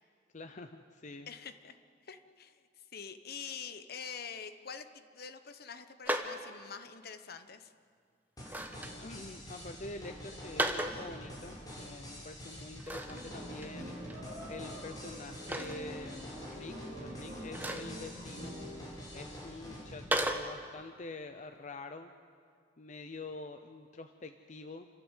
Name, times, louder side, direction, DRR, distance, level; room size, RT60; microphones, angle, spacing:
voice 1, 0.3-1.3 8.9-18.5 19.1-22.1 22.8-24.9, left 3 dB, 40° left, 7 dB, 0.8 m, -46 dB
voice 2, 1.3-1.8 2.0-2.6 2.9-7.7, left 6 dB, 55° left, 10 dB, 1.1 m, -45 dB
sound 1, 6.0-6.4 8.4-8.9 10.4-11.0 12.8-13.2 13.6-13.7 14.1-14.2 15.5-15.8 17.5-17.9 20.1-20.5, right 1 dB, 10° right, 1.2 m, -33 dB
sound 2, 8.4-20.1, equal, 20° left, 5.9 m, -47 dB
sound 3, 13.1-18.8, equal, 35° right, 4.6 m, -46 dB
29.0 x 12.5 x 8.3 m, 2.2 s
head